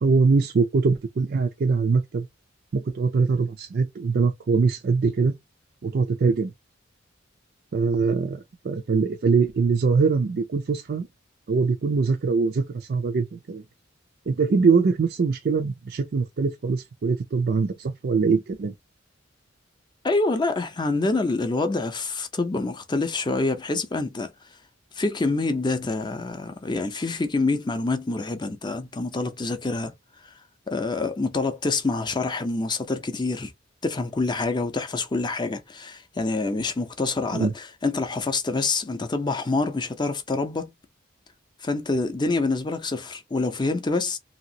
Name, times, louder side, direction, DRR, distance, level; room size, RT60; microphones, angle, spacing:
voice 1, 0.0-2.3 2.7-5.3 5.8-6.5 7.7-11.1 11.5-13.6 14.3-18.7 37.3-37.5, right 4 dB, 50° right, 0.4 m, -23 dB
voice 2, 20.0-24.3 25.0-29.9 30.7-33.5 33.8-40.7 41.6-44.2, left 3 dB, 25° left, 0.5 m, -26 dB
2.9 x 2.8 x 2.7 m
head